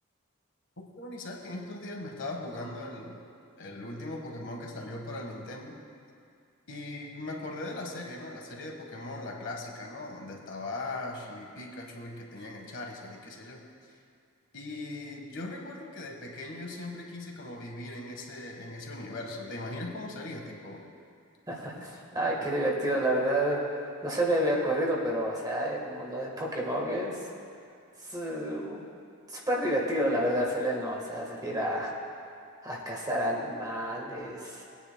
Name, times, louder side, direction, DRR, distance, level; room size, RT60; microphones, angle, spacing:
voice 1, 0.8-3.2 3.6-5.8 6.7-13.6 14.5-20.9 21.7-22.5, left 2 dB, 60° left, 1 dB, 1.5 m, -39 dB
voice 2, 21.5-23.6 24.0-27.2 28.0-28.8 29.3-31.9 32.6-34.6, right 1 dB, 15° right, -2 dB, 1.4 m, -29 dB
20.5 x 9.8 x 2.2 m, 2.3 s
head